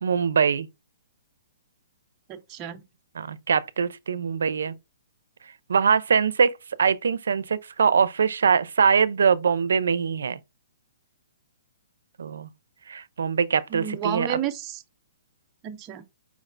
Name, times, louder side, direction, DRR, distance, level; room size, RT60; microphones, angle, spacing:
voice 1, 0.0-0.7 3.2-4.7 5.7-6.5 6.8-10.4 12.2-12.5 12.9-14.4, right 6 dB, 80° right, 0.4 m, -22 dB
voice 2, 2.3-2.8 13.7-14.8 15.6-16.0, right 9 dB, 15° right, 0.3 m, -31 dB
5.0 x 2.5 x 3.2 m
hypercardioid pair, 180°, 0 cm